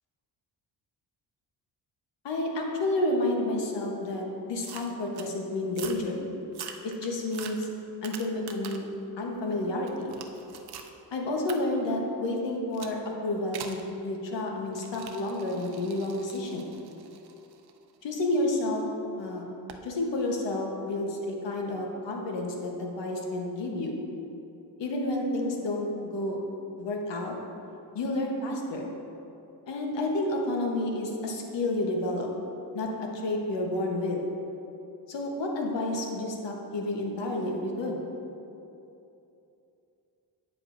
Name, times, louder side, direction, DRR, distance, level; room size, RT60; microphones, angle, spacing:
voice 1, 2.2-6.2 6.8-7.7 8.0-8.9 9.2-10.1 11.1-16.7 18.0-18.8 19.2-19.4 19.8-24.0 24.8-26.4 26.8-27.3 27.9-28.8 29.7-32.3 32.7-34.2 35.1-38.0, left 2 dB, 80° left, 0 dB, 1.2 m, -30 dB
sound 1, 4.6-5.3 5.7-6.1 6.5-8.9 9.4-10.9 11.5-11.6 12.7-13.0 13.5-13.8 14.7-18.7 19.7-19.9, right 7 dB, 60° right, 0.6 m, -44 dB
8.6 x 7.5 x 2.6 m, 2.8 s
cardioid pair, 115°, 43 cm